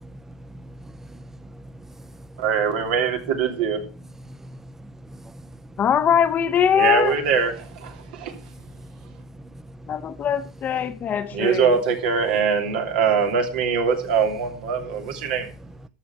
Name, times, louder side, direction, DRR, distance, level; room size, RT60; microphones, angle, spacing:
voice 1, 0.0-2.1 4.3-5.6 8.3-10.1, right 1 dB, 10° right, 0.6 m, -43 dB
voice 2, 2.4-3.8 6.7-8.3 11.3-15.5, right 6 dB, 85° right, 3.0 m, -22 dB
voice 3, 5.8-7.2 9.9-11.7, left 8 dB, 35° left, 0.7 m, -21 dB
14.0 x 6.2 x 6.0 m
supercardioid pair, 115°, 5 cm